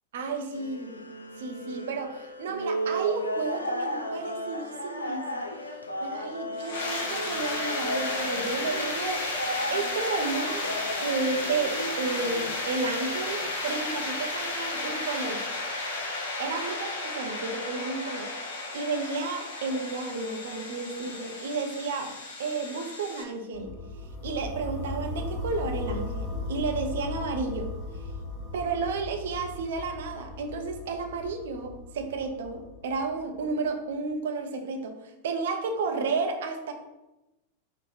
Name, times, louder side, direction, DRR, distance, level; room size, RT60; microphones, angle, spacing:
voice 1, 0.1-1.0 1.4-5.4 6.0-10.7 11.0-15.5 16.4-18.3 18.7-22.1 22.4-23.7 24.2-27.7 28.5-34.9 35.2-36.7, right 4 dB, 60° right, 4 dB, 0.4 m, -32 dB
sound 1, 0.5-13.5, equal, 80° left, 0.3 m, -35 dB
sound 2, 6.6-23.2, left 2 dB, 55° left, 0.8 m, -33 dB
sound 3, 23.5-33.5, left 2 dB, 15° left, 0.8 m, -37 dB
3.4 x 2.0 x 4.2 m, 0.99 s
figure-of-eight pair, 90°, 0 cm